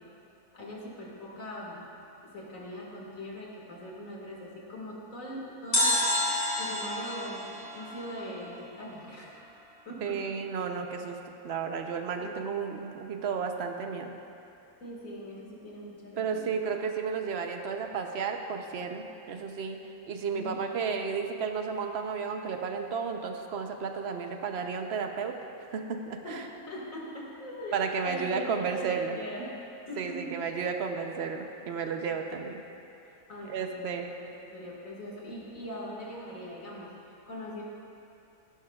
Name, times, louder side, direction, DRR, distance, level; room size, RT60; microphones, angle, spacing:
voice 1, 0.5-1.8 2.2-6.3 6.6-9.5 9.9-10.2 12.2-12.4 14.8-16.6 20.3-20.8 26.2-29.6 29.9-30.4 33.3-37.6, equal, 60° left, -4 dB, 2.4 m, -41 dB
sound 1, 5.7-8.8 9.1-9.2, left 1 dB, 25° left, 1.8 m, -30 dB
voice 2, 10.0-11.2 11.4-14.1 16.2-19.8 20.1-26.4 27.7-29.1 30.0-32.6 33.5-34.1, right 5 dB, 55° right, 4 dB, 0.9 m, -33 dB
16.5 x 11.5 x 2.4 m, 2.7 s
omnidirectional pair, 1.6 m